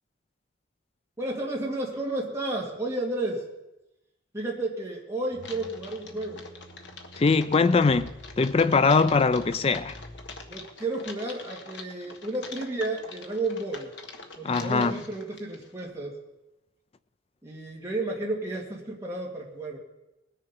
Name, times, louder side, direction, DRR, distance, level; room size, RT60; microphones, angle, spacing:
voice 1, 1.2-3.5 4.3-6.5 8.8-9.0 10.5-13.9 14.4-16.2 17.4-19.8, right 2 dB, 15° right, 2.0 m, -32 dB
sound 1, 5.3-10.7, equal, 45° left, 4.9 m, -48 dB
Typing, 5.4-15.9, left 4 dB, 60° left, 1.2 m, -45 dB
voice 2, 7.2-10.0 14.4-15.0, left 4 dB, 30° left, 0.3 m, -22 dB
20.0 x 6.7 x 5.4 m
head